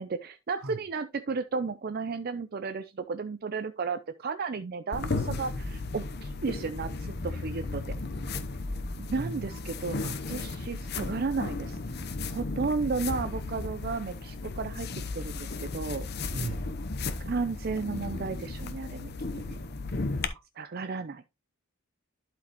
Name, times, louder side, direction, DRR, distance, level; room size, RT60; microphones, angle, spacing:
voice 1, 0.0-7.8 9.0-10.0 10.3-11.8 12.3-14.9 15.1-16.1 17.2-19.1 19.5-19.6 20.6-21.2, right 4 dB, 45° right, 0.4 m, -33 dB
sound 1, 4.9-20.3, left 3 dB, 50° left, 0.8 m, -35 dB
voice 2, 8.3-8.6 9.2-9.5 10.0-10.2 12.9-13.0 16.3-16.7 20.2-20.4, right 3 dB, 85° right, 1.2 m, -39 dB
11.5 x 4.8 x 3.0 m
head